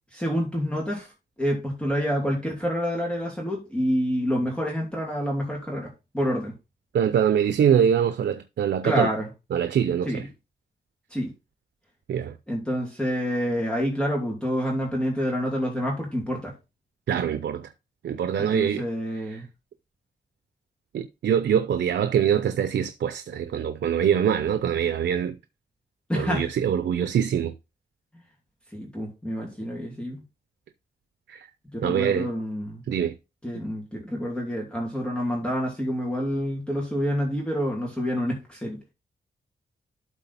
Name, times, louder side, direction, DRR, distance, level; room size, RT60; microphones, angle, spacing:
voice 1, 0.1-1.1 1.4-6.5 8.8-9.3 10.1-10.3 11.1-11.3 12.5-16.5 18.4-19.4 26.1-26.5 28.7-30.2 31.7-32.8 33.4-38.8, equal, 5° left, 2.5 m, -28 dB
voice 2, 6.9-9.1 9.5-10.2 12.1-12.3 17.1-17.7 18.0-18.8 19.2-19.3 20.9-25.3 26.1-27.5 31.3-31.5 31.8-32.3 32.9-33.1, right 8 dB, 80° right, 0.7 m, -24 dB
12.0 x 4.1 x 4.1 m
wide cardioid pair, 140°, 18 cm